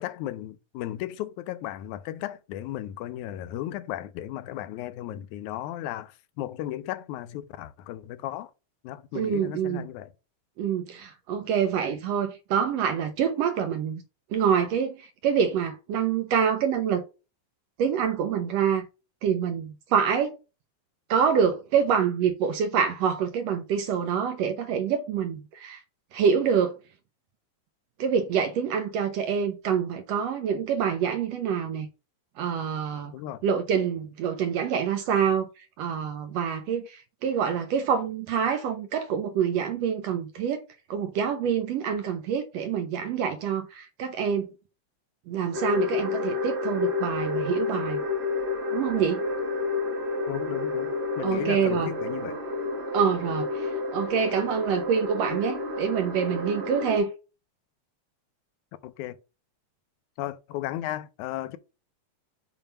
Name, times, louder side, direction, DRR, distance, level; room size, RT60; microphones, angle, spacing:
voice 1, 0.0-8.5 8.8-10.1 33.1-33.4 50.3-52.4 58.8-59.2 60.2-61.6, left 13 dB, 85° left, 2.0 m, -35 dB
voice 2, 9.1-9.9 10.6-14.0 14.3-17.0 17.8-18.9 19.2-20.4 21.1-25.8 26.1-26.8 28.0-31.9 32.4-33.1 33.4-44.5 45.3-48.0 48.7-49.2 51.2-51.9 52.9-57.1, right 7 dB, 75° right, 1.6 m, -26 dB
sound 1, 45.5-57.0, left 3 dB, 40° right, 0.9 m, -30 dB
7.0 x 2.8 x 5.5 m
omnidirectional pair, 3.4 m